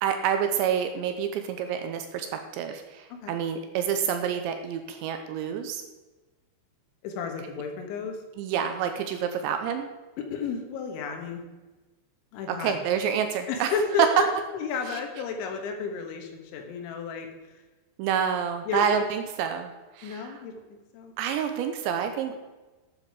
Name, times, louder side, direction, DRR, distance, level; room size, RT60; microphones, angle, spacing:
voice 1, 0.0-5.8 8.4-9.9 12.5-14.1 18.0-20.4 21.2-22.4, right 8 dB, 80° right, 7 dB, 2.8 m, -28 dB
voice 2, 7.0-8.2 10.2-11.4 12.3-12.8 13.5-14.3 14.5-17.6 18.7-19.0 20.0-21.1, left 5 dB, 75° left, 4 dB, 3.6 m, -32 dB
12.5 x 8.7 x 4.8 m, 1.2 s
omnidirectional pair, 5.7 m